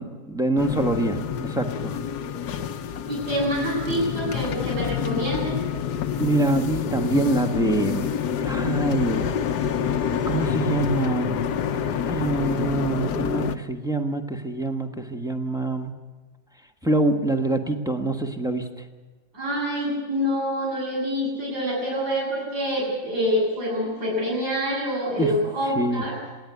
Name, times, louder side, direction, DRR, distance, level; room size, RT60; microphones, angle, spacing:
voice 1, 0.0-1.9 5.0-5.2 6.2-8.1 8.4-9.2 10.3-11.3 12.0-15.9 16.8-18.6 25.2-25.3 25.7-26.0, right 2 dB, ahead, 3 dB, 1.1 m, -25 dB
sound 1, 0.6-13.6, left 8 dB, 65° left, 1.3 m, -27 dB
voice 2, 2.2-2.6 3.1-5.6 19.3-26.2, equal, 55° right, -5 dB, 8.3 m, -26 dB
27.0 x 10.5 x 9.6 m, 1.3 s
omnidirectional pair, 2.0 m